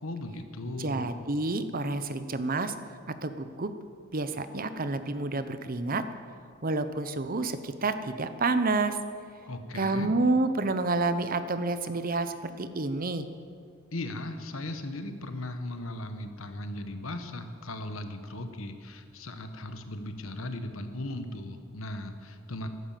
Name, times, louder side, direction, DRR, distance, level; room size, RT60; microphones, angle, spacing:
voice 1, 0.0-1.1 9.5-10.1 13.9-22.7, left 1 dB, 80° left, 8 dB, 1.3 m, -37 dB
voice 2, 0.8-2.7 3.2-3.7 4.1-6.0 6.6-9.0 9.7-13.3, right 3 dB, 45° right, 11 dB, 0.8 m, -29 dB
14.5 x 11.5 x 7.5 m, 2.3 s
head